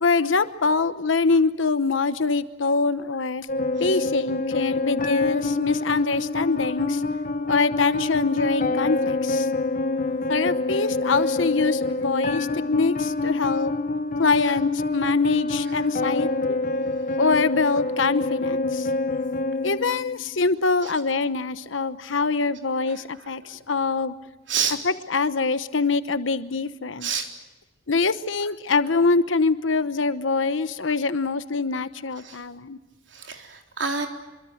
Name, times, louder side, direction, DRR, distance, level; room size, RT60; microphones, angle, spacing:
voice 1, 0.0-3.5 3.8-7.0 7.5-9.5 10.3-13.7 14.2-16.6 17.2-18.9 19.6-24.1 24.8-27.1 27.9-32.8, left 4 dB, 75° left, 12 dB, 1.0 m, -24 dB
sound 1, 3.5-20.5, left 2 dB, 45° left, 1.1 m, -26 dB
voice 2, 9.8-10.2 15.7-16.0 20.8-20.9 22.9-23.6 24.5-24.8 27.0-27.3 32.2-32.4 33.1-34.1, right 6 dB, 65° right, 4 dB, 3.8 m, -31 dB
26.0 x 24.0 x 7.9 m, 1.1 s
head